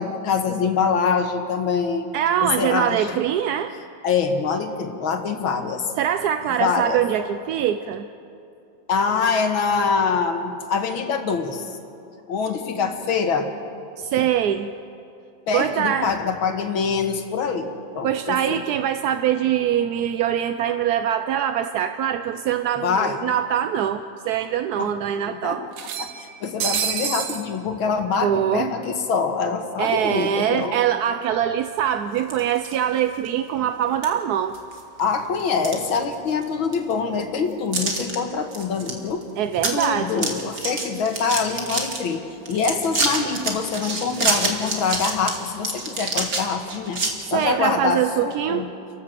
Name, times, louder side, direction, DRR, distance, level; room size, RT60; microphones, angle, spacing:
voice 1, 0.0-2.1 2.4-3.2 4.0-5.9 6.6-7.0 8.9-11.7 12.3-13.5 15.5-18.6 22.8-23.2 24.8-24.9 25.2-25.7 26.0-30.8 35.0-39.2 39.7-47.0 47.3-48.7, left 5 dB, 85° left, 6 dB, 2.3 m, -24 dB
voice 2, 2.1-3.7 6.0-8.1 14.0-14.7 15.5-16.1 18.0-25.6 28.2-28.7 29.8-34.6 39.4-40.3 47.3-48.7, right 10 dB, 70° right, 9 dB, 1.0 m, -23 dB
sound 1, 22.3-22.4 22.7-22.8 23.9-24.0 24.3-24.4 25.7-27.5, right 8 dB, 85° right, 1.8 m, -28 dB
sound 2, 32.2-32.8 33.2-33.3 34.0-34.1 34.5-35.0 35.4-36.4 36.7-36.8 37.7-38.2 38.5-38.9 39.2-39.3 39.6-39.9 40.1-42.0 42.5-47.1, right 3 dB, 45° right, 2.5 m, -27 dB
29.5 x 12.5 x 7.6 m, 2.6 s
omnidirectional pair, 2.1 m